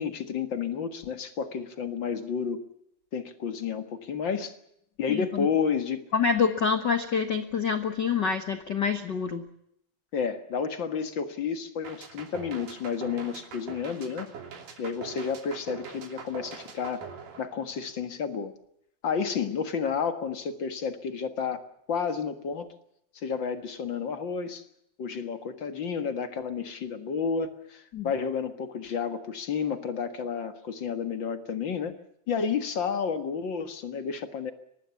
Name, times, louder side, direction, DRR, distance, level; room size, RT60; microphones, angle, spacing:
voice 1, 0.0-2.6 3.1-4.5 5.0-6.1 10.1-14.3 14.8-17.1 17.4-18.5 19.0-22.7 23.1-24.6 25.0-32.0 32.3-34.5, left 6 dB, 45° left, 9 dB, 1.5 m, -31 dB
voice 2, 5.1-5.5 6.1-9.4 27.9-28.1, left 6 dB, 75° left, 8 dB, 1.0 m, -26 dB
sound 1, 11.8-18.0, right 6 dB, 65° right, 4.6 m, -43 dB
24.0 x 19.0 x 7.1 m, 0.75 s
omnidirectional pair, 4.2 m